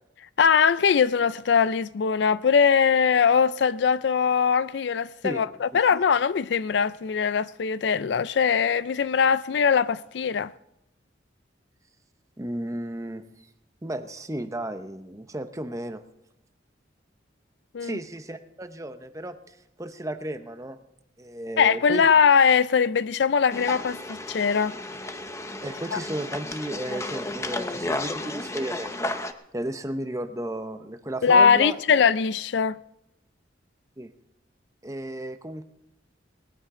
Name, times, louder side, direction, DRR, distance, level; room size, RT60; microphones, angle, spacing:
voice 1, 0.4-10.5 17.7-18.0 21.6-24.8 25.9-26.0 31.2-32.8, left 6 dB, 65° left, 0.4 m, -21 dB
voice 2, 12.4-13.2 13.8-16.0 17.8-20.8 21.2-22.1 25.6-29.1 29.5-31.8 34.0-34.1 34.8-35.6, right 1 dB, 15° right, 0.8 m, -34 dB
sound 1, 23.5-29.3, left 2 dB, 15° left, 0.7 m, -33 dB
19.5 x 14.0 x 3.8 m
head